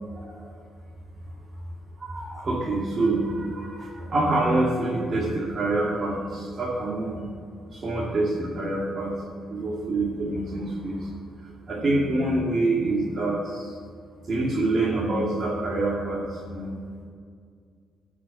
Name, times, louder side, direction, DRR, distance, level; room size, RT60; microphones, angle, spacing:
voice 1, 2.0-7.2 7.7-9.2 9.5-11.1 11.7-13.7 14.3-16.8, right 2 dB, 40° right, -5 dB, 2.5 m, -26 dB
15.5 x 6.2 x 6.0 m, 2.1 s
cardioid pair, 90°, 0 cm